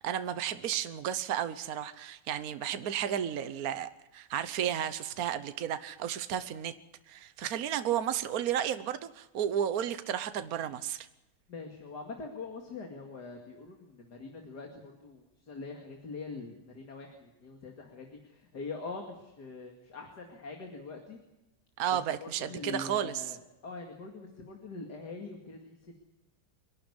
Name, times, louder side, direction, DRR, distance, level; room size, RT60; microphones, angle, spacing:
voice 1, 0.0-6.7 7.1-11.1 21.8-23.4, right 10 dB, 60° right, 1.4 m, -33 dB
voice 2, 11.5-21.2 21.9-25.9, left 3 dB, 70° left, 2.9 m, -43 dB
26.0 x 11.5 x 9.9 m
omnidirectional pair, 1.8 m